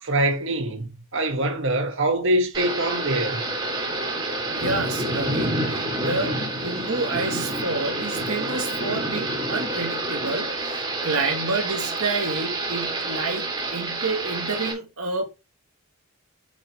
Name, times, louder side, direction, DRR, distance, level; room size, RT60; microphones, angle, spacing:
voice 1, 0.0-3.4, right 1 dB, 60° right, 2.0 m, -24 dB
Thunder / Rain, 2.5-14.7, right 2 dB, 20° right, 3.4 m, -28 dB
voice 2, 4.5-15.2, right 3 dB, 75° right, 1.7 m, -29 dB
9.3 x 6.4 x 3.5 m
head